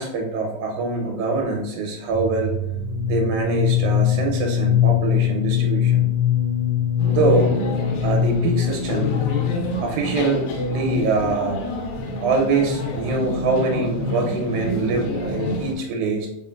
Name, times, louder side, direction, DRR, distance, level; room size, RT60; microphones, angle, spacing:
voice 1, 0.0-2.5 3.1-6.1 7.1-7.5 8.0-9.2 9.8-11.6 12.2-16.3, right 3 dB, 85° right, 1 dB, 2.0 m, -24 dB
sound 1, 2.1-9.8, left 10 dB, 60° right, 1.7 m, -22 dB
sound 2, 7.0-15.7, left 1 dB, 75° left, 1.8 m, -27 dB
3.9 x 3.7 x 2.2 m, 0.91 s
omnidirectional pair, 3.4 m